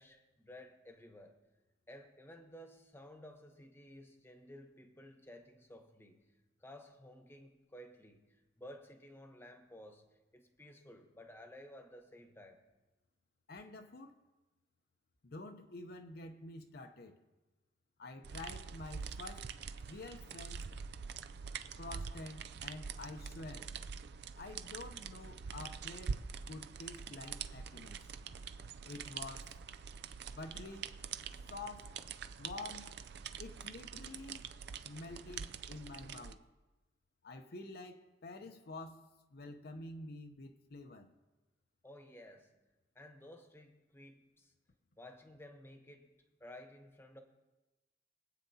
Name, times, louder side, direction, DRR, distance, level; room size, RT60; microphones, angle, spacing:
voice 1, 0.0-1.4 1.9-6.3 6.6-10.1 10.3-12.6 41.8-42.5 42.9-44.5 45.0-46.1 46.4-47.2, left 1 dB, 15° left, 1.1 m, -54 dB
voice 2, 13.5-14.1 15.2-17.2 18.0-19.5 19.8-20.7 21.8-23.7 24.3-26.2 26.5-28.1 28.8-29.5 30.3-30.9 31.5-32.0 32.4-33.0 33.4-34.5 34.8-36.4 37.2-39.0 39.3-41.1, left 2 dB, 60° left, 0.7 m, -48 dB
sound 1, 18.2-36.3, right 6 dB, 65° right, 0.4 m, -45 dB
23.0 x 8.4 x 2.8 m
head